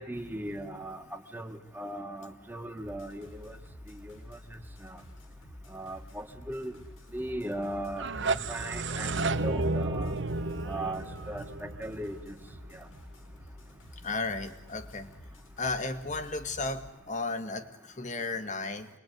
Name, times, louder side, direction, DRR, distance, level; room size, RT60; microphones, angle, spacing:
voice 1, 0.0-3.6 3.9-4.4 4.8-5.0 5.7-6.7 7.1-10.1 10.6-12.3 12.7-12.8, right 1 dB, 10° right, 5 dB, 1.9 m, -38 dB
sound 1, 2.8-16.9, left 1 dB, 90° left, 6.0 m, -50 dB
sound 2, 7.9-12.8, right 3 dB, 65° right, 1.0 m, -32 dB
voice 2, 14.0-15.1 15.6-18.9, left 3 dB, 40° left, 9 dB, 1.8 m, -34 dB
27.5 x 21.0 x 9.5 m, 0.93 s
head